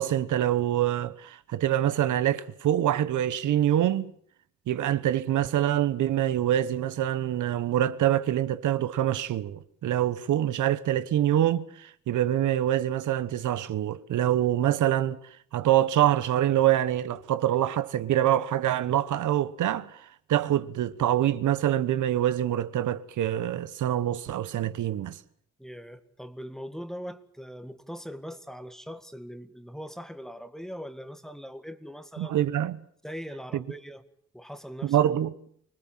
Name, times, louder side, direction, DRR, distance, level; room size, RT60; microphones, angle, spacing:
voice 1, 0.0-4.1 4.7-15.2 15.5-20.0 20.3-25.2 32.2-32.8 33.5-33.6 34.8-35.3, right 12 dB, 80° right, 1.2 m, -25 dB
voice 2, 25.6-32.5 33.0-34.0 34.3-35.2, equal, ahead, 1.9 m, -41 dB
25.5 x 20.0 x 7.4 m
cardioid pair, 125°, 30 cm